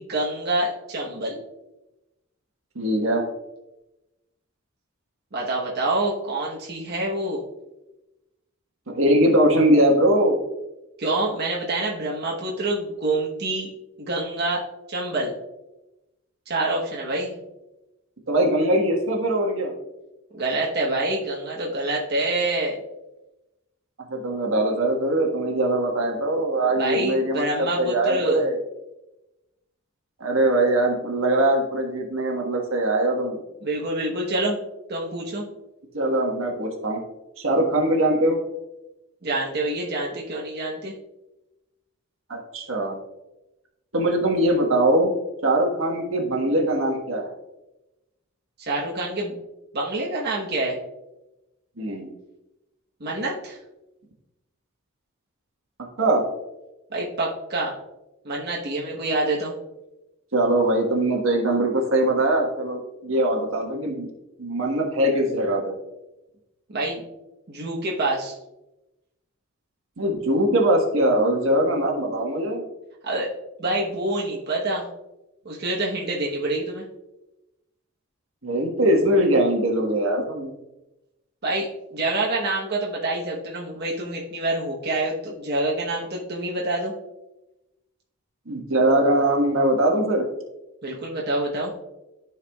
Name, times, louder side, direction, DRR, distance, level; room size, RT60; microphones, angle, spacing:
voice 1, 0.0-1.4 5.3-7.4 11.0-13.7 14.0-14.6 14.9-15.4 16.5-17.3 20.3-22.8 26.8-28.4 33.6-34.6 34.9-35.4 39.2-40.9 48.6-49.4 49.7-50.8 53.0-53.6 56.9-57.8 58.2-59.5 66.7-67.0 67.5-68.3 73.0-73.3 73.6-74.9 75.4-76.8 81.4-86.9 90.8-91.7, right 2 dB, 55° right, -3 dB, 1.1 m, -26 dB
voice 2, 2.7-3.2 8.9-10.4 18.3-19.7 24.1-28.6 30.2-33.4 35.9-37.0 37.4-38.4 42.3-43.0 43.9-45.1 45.4-47.3 51.8-52.1 56.0-56.2 60.3-64.1 64.4-65.8 70.0-72.6 78.4-80.5 88.5-90.2, right 1 dB, 80° right, 1 dB, 1.5 m, -21 dB
13.0 x 4.7 x 2.3 m, 0.97 s
head